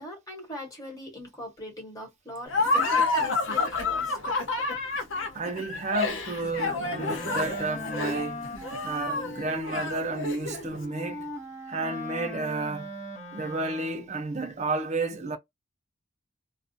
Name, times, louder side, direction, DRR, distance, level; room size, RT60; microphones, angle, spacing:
voice 1, 0.0-4.2, left 1 dB, 20° left, 1.2 m, -41 dB
Laughter, 2.5-10.8, left 3 dB, 75° left, 0.7 m, -29 dB
voice 2, 5.3-8.4 8.8-11.3 11.7-12.9 13.3-15.4, right 3 dB, 35° right, 0.5 m, -31 dB
Wind instrument woodwind instrument, 6.8-14.2, left 1 dB, 40° left, 0.8 m, -40 dB
2.4 x 2.0 x 2.6 m
head